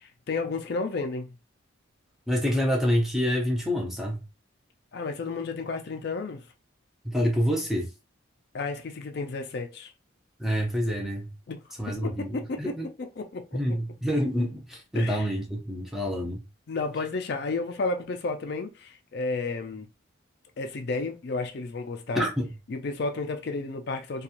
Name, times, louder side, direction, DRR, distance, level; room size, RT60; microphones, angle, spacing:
voice 1, 0.3-1.3 4.9-6.4 8.5-9.9 11.5-11.6 11.9-13.6 14.9-15.3 16.7-19.9 20.6-22.3 22.7-24.2, left 3 dB, 55° left, 0.4 m, -32 dB
voice 2, 2.3-4.2 7.0-7.9 10.4-11.3 11.8-12.9 13.5-16.4 22.1-22.5, equal, ahead, 0.6 m, -27 dB
2.9 x 2.3 x 2.4 m
head